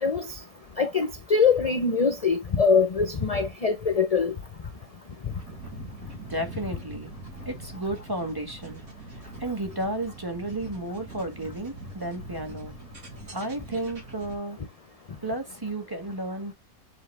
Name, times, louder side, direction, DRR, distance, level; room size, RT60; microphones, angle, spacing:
voice 1, 0.8-4.3, left 5 dB, 35° left, 0.7 m, -23 dB
sound 1, 5.2-14.4, right 2 dB, 70° right, 2.6 m, -43 dB
voice 2, 6.3-7.1 7.5-8.8 9.4-12.7 13.3-14.6 15.2-16.5, right 1 dB, 15° right, 1.7 m, -32 dB
7.2 x 4.0 x 3.4 m
omnidirectional pair, 1.5 m